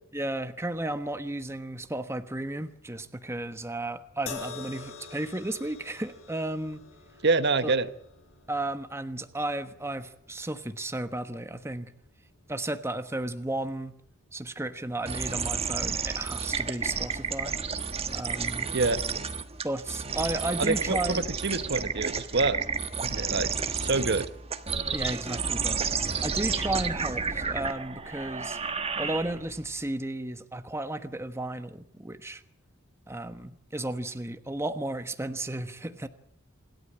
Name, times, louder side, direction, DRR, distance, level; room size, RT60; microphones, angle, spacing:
voice 1, 0.1-6.8 7.6-7.7 8.5-11.9 12.5-13.9 14.3-17.6 18.1-18.7 19.6-21.2 24.9-25.8 26.2-28.6 29.0-32.4 33.1-36.1, right 1 dB, 10° right, 9 dB, 1.2 m, -33 dB
sound 1, 4.3-17.6 18.5-18.7, left 5 dB, 85° left, 6.2 m, -49 dB
voice 2, 7.2-7.9 18.7-19.0 20.6-22.6 23.0-24.3, right 3 dB, 55° right, 12 dB, 1.2 m, -26 dB
sound 2, 15.1-29.6, right 5 dB, 30° right, 1.4 m, -31 dB
27.0 x 12.0 x 9.8 m, 0.66 s
head